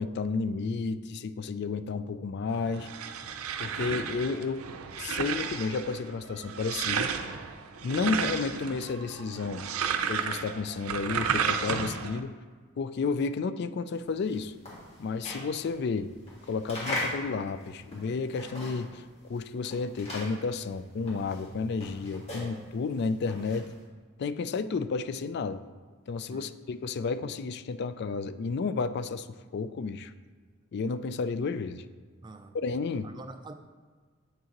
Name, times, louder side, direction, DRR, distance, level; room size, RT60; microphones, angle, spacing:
voice 1, 0.0-2.9 3.6-4.6 5.0-7.1 7.8-9.6 10.1-12.3 12.8-14.5 15.0-16.1 16.5-19.0 19.3-23.7 24.2-25.6 26.1-29.3 29.5-30.1 30.7-31.8 32.5-33.1, left 4 dB, 50° left, 12 dB, 0.3 m, -31 dB
sound 1, 2.5-12.2, right 7 dB, 90° right, 0.5 m, -33 dB
sound 2, 14.0-19.1 19.3-23.8, left 1 dB, 30° left, 1.8 m, -39 dB
voice 2, 32.2-32.6 33.0-33.5, right 3 dB, 20° right, 8 dB, 0.4 m, -45 dB
8.1 x 6.3 x 3.0 m, 1.5 s
head